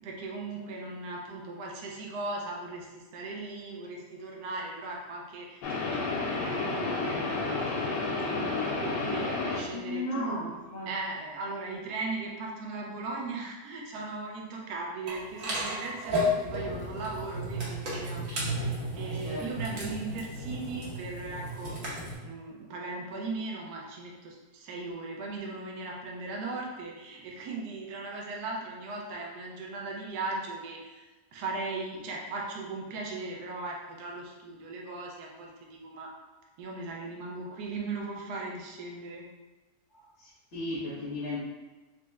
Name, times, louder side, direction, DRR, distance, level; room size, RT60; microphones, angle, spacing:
voice 1, 0.0-10.5 10.9-21.7 22.2-36.1 36.6-39.2, right 3 dB, 75° right, -1 dB, 1.1 m, -38 dB
sound 1, 5.6-9.9, left 3 dB, 90° left, 1.3 m, -31 dB
voice 2, 9.3-10.9 19.2-19.5 39.9-41.4, left 1 dB, 50° left, -10 dB, 1.0 m, -36 dB
sound 2, 15.1-22.1, equal, 55° right, 1.3 m, -33 dB
4.2 x 2.0 x 3.4 m, 1.2 s
omnidirectional pair, 1.8 m